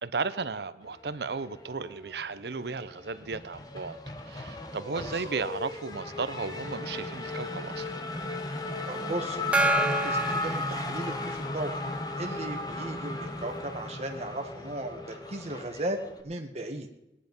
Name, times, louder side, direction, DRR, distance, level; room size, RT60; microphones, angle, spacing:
voice 1, 0.0-4.0 4.3-7.9, right 4 dB, 70° right, 14 dB, 0.7 m, -34 dB
Race car auto racing / Accelerating revving vroom, 1.2-2.2 2.5-16.2, left 2 dB, 20° left, 1.1 m, -35 dB
voice 2, 4.9-5.2 8.9-11.7 12.2-16.9, right 1 dB, 35° right, 4 dB, 1.5 m, -36 dB
Gong, 9.5-11.6, right 3 dB, 5° right, 0.8 m, -29 dB
18.5 x 10.0 x 5.4 m, 0.92 s
head